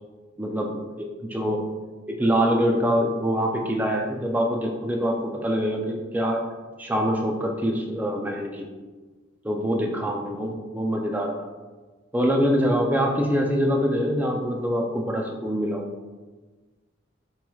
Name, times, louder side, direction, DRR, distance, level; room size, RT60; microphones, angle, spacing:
voice 1, 0.4-1.6 2.1-6.4 6.8-8.7 9.4-11.3 12.1-15.8, equal, 10° right, 1 dB, 0.4 m, -24 dB
7.1 x 3.1 x 2.3 m, 1.3 s
head